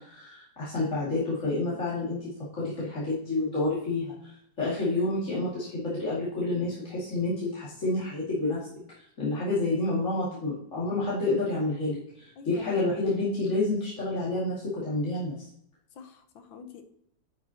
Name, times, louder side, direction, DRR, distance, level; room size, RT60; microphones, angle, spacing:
voice 1, 0.0-8.7 8.9-15.5, left 2 dB, 40° left, -9 dB, 2.7 m, -29 dB
voice 2, 12.4-13.0 16.0-16.8, left 6 dB, 80° left, 7 dB, 1.7 m, -45 dB
10.5 x 6.0 x 2.9 m, 0.72 s
omnidirectional pair, 2.1 m